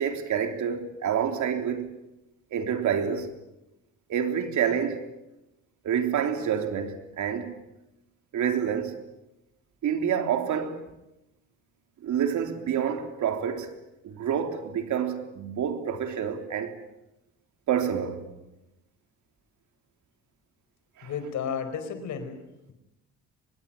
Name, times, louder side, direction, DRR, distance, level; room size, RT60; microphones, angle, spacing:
voice 1, 0.0-1.9 2.5-3.3 4.1-5.0 5.8-7.5 8.3-9.0 9.8-10.8 12.0-13.7 14.0-16.7 17.7-18.3 21.0-21.1, right 8 dB, 75° right, 3.5 m, -28 dB
voice 2, 21.0-22.4, left 7 dB, 75° left, 4.7 m, -32 dB
24.5 x 20.5 x 9.0 m
cardioid pair, 90°, 30 cm